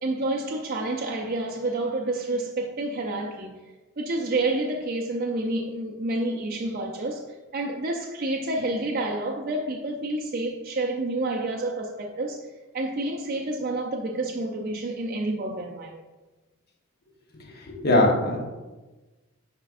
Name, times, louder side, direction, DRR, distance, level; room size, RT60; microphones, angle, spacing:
voice 1, 0.0-3.6 4.0-7.3 7.5-12.5 12.7-16.0, right 2 dB, 40° right, -1 dB, 0.5 m, -29 dB
voice 2, 17.3-18.5, left 1 dB, 45° left, 1 dB, 1.0 m, -22 dB
9.8 x 4.5 x 2.5 m, 1.2 s
head